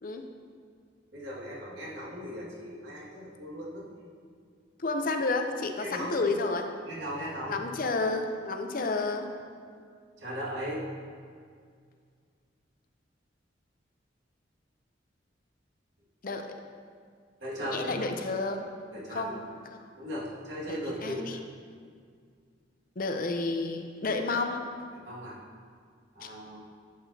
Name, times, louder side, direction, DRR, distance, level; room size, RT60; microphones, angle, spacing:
voice 1, 1.1-3.9 5.8-6.2 6.9-7.6 10.2-10.8 17.4-18.1 18.9-19.4 20.0-21.4 24.9-25.4 26.2-26.6, equal, 75° right, -5 dB, 1.9 m, -37 dB
voice 2, 4.8-6.6 7.5-9.3 16.2-16.4 17.6-18.6 19.1-19.8 20.7-21.4 23.0-24.6 26.2-26.3, left 3 dB, 50° left, 5 dB, 0.6 m, -31 dB
11.0 x 7.7 x 2.8 m, 2.1 s
head